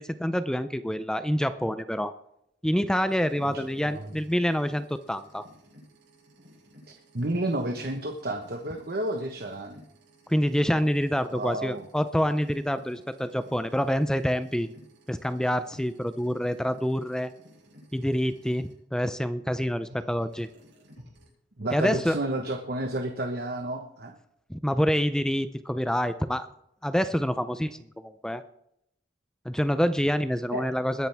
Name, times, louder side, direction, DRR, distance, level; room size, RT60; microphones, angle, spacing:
voice 1, 0.0-2.1 2.6-5.4 10.3-14.7 15.1-17.3 17.9-20.5 21.7-22.2 24.5-26.5 26.8-28.4 29.5-31.1, equal, 5° left, 11 dB, 0.5 m, -27 dB
sound 1, 3.1-18.7 19.9-21.3, equal, 75° right, 7.2 m, -55 dB
voice 2, 3.4-4.1 7.1-9.8 11.3-11.9 21.6-24.1 30.5-30.7, right 1 dB, 55° right, 4 dB, 1.2 m, -31 dB
21.5 x 10.5 x 3.5 m, 0.76 s
head